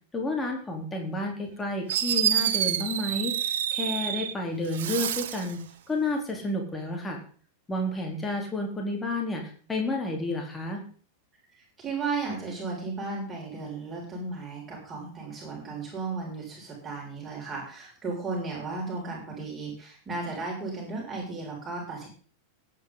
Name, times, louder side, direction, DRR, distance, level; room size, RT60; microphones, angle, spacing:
voice 1, 0.1-7.2 7.7-10.8, left 1 dB, 15° left, 1 dB, 4.0 m, -31 dB
Fireworks, 1.5-1.6 1.9-4.3 4.7-5.5, right 10 dB, 55° right, 1.1 m, -28 dB
voice 2, 11.5-22.1, right 3 dB, 20° right, -3 dB, 6.9 m, -35 dB
20.5 x 9.7 x 4.1 m, 0.42 s
figure-of-eight pair, 90°, 0 cm